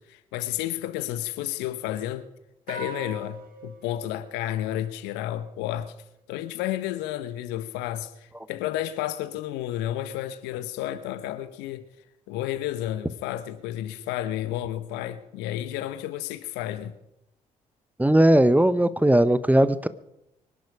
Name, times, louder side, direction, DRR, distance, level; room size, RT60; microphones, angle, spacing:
voice 1, 0.0-2.3 2.7-5.9 6.3-11.8 12.3-17.0, left 13 dB, 75° left, 1.1 m, -31 dB
sound 1, 2.7-5.2, right 4 dB, 55° right, 5.9 m, -41 dB
voice 2, 18.0-19.9, right 1 dB, 10° right, 1.0 m, -18 dB
24.0 x 10.5 x 4.9 m
hypercardioid pair, 45°, 18 cm